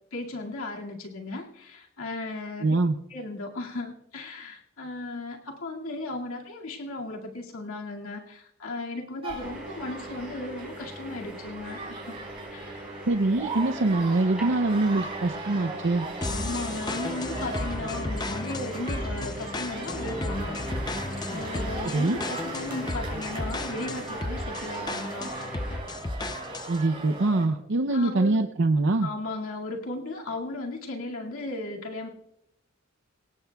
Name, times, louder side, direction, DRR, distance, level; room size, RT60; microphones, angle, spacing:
voice 1, 0.1-2.8 3.1-12.2 12.5-12.9 16.3-21.0 21.3-25.3 27.9-28.4 29.0-32.1, left 2 dB, 80° left, 0 dB, 2.2 m, -36 dB
voice 2, 2.6-3.0 13.1-16.1 21.8-22.2 26.7-29.1, right 2 dB, 55° right, 7 dB, 0.6 m, -24 dB
sound 1, 9.2-27.5, right 3 dB, 25° right, 5.6 m, -39 dB
sound 2, 9.4-25.8, right 1 dB, 5° right, 4.7 m, -42 dB
sound 3, 16.2-26.8, left 2 dB, 20° left, 0.6 m, -34 dB
25.0 x 18.0 x 2.3 m, 0.84 s
head